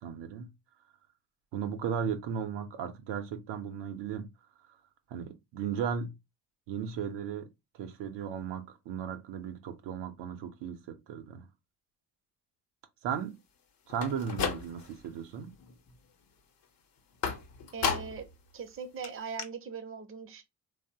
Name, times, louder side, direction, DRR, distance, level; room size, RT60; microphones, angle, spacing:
voice 1, 0.0-0.5 1.5-4.3 5.1-6.1 6.7-7.5 7.7-11.5 13.0-13.4 13.9-15.5, right 7 dB, 75° right, 0.6 m, -36 dB
sound 1, 13.9-15.1 15.4-15.9 17.2-18.3 18.7-18.8 19.0-19.1 19.4-19.5, left 6 dB, 55° left, 0.7 m, -34 dB
voice 2, 17.7-18.3 18.5-20.4, right 5 dB, 30° right, 0.6 m, -40 dB
2.8 x 2.0 x 2.6 m
supercardioid pair, 65°, 42 cm